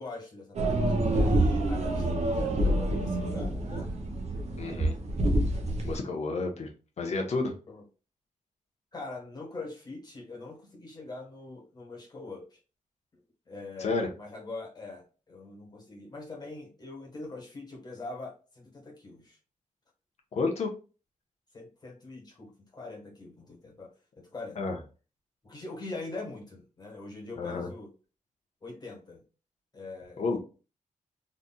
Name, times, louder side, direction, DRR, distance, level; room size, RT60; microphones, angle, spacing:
voice 1, 0.0-3.9 7.7-7.8 8.9-12.6 13.1-13.2 13.5-19.4 21.5-23.9 24.2-24.6 25.4-27.9 28.6-29.2 29.7-30.4, left 3 dB, 30° left, -1 dB, 1.6 m, -43 dB
sound 1, 0.5-6.0, right 1 dB, 55° right, 1.0 m, -27 dB
voice 2, 4.6-4.9 5.8-6.7 7.0-7.5 13.8-14.1 20.3-20.7 24.6-24.8 27.4-27.7 30.2-30.4, left 3 dB, 55° left, 3 dB, 1.1 m, -30 dB
4.1 x 3.3 x 2.4 m, 0.33 s
wide cardioid pair, 170°, 13 cm